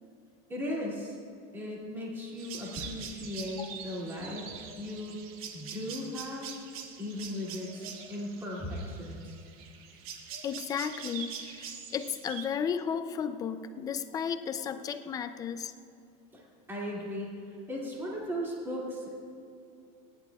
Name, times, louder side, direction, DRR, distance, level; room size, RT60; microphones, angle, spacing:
voice 1, 0.5-1.2 1.5-5.2 5.5-6.5 7.0-9.3 16.3-16.4 16.7-19.2, left 1 dB, 15° right, -5 dB, 2.4 m, -37 dB
sound 1, 2.4-12.5, right 7 dB, 85° right, 1.4 m, -44 dB
voice 2, 10.4-15.7, left 7 dB, 20° left, 10 dB, 0.4 m, -34 dB
29.5 x 11.0 x 2.3 m, 2.5 s
supercardioid pair, 165°, 18 cm